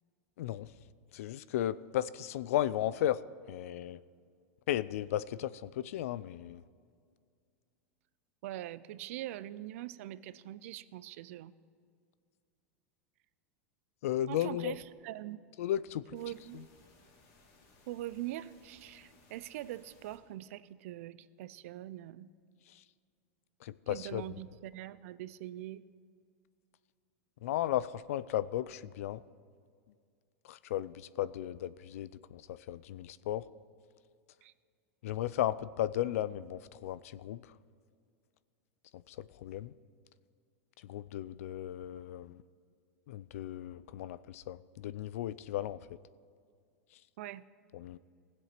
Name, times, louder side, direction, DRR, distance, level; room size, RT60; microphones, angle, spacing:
voice 1, 0.4-0.7 1.1-3.2 3.5-4.0 4.7-6.6 14.0-14.8 15.6-16.2 16.5-16.6 22.7-22.8 23.6-24.2 27.4-29.2 30.4-33.5 35.0-37.5 38.9-39.7 40.8-42.4 43.1-45.8 47.7-48.0, left 12 dB, 75° left, 18 dB, 0.4 m, -35 dB
voice 2, 8.4-11.5 14.3-15.4 16.1-16.7 17.9-22.3 23.9-25.8 34.4-34.5 47.2-47.5, right 14 dB, 70° right, 17 dB, 0.4 m, -43 dB
sound 1, 16.1-20.2, left 2 dB, 45° left, 2.5 m, -63 dB
16.5 x 7.8 x 5.8 m, 2.2 s
supercardioid pair, 130°, 8 cm